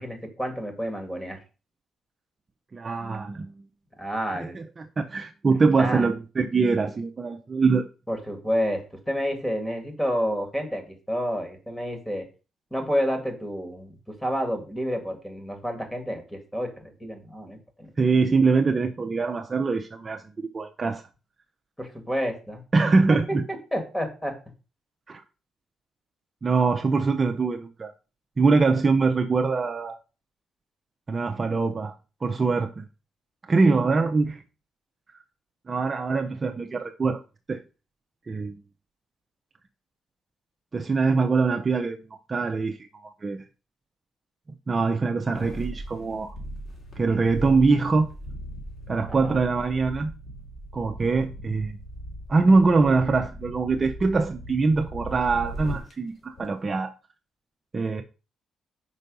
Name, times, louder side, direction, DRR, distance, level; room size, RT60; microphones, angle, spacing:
voice 1, 0.0-1.4 4.0-4.5 5.8-6.1 8.1-12.2 12.7-17.9 21.8-22.6 23.3-23.4 23.7-24.3 49.2-49.4, equal, 10° left, 1.8 m, -29 dB
voice 2, 2.7-3.7 4.5-7.9 18.0-20.2 20.5-21.0 22.7-23.4 25.1-25.2 26.4-27.9 28.4-30.0 31.1-31.9 32.2-32.8 33.5-34.4 35.7-37.2 37.5-37.6 38.3-38.6 40.7-43.4 44.7-46.3 47.0-48.1 48.9-50.1 50.7-51.8 52.3-56.9 57.7-58.0, right 4 dB, 30° right, 0.6 m, -23 dB
sound 1, 45.2-55.9 56.4-56.5, right 1 dB, 45° left, 2.8 m, -38 dB
5.5 x 4.0 x 5.3 m
cardioid pair, 90°, 0 cm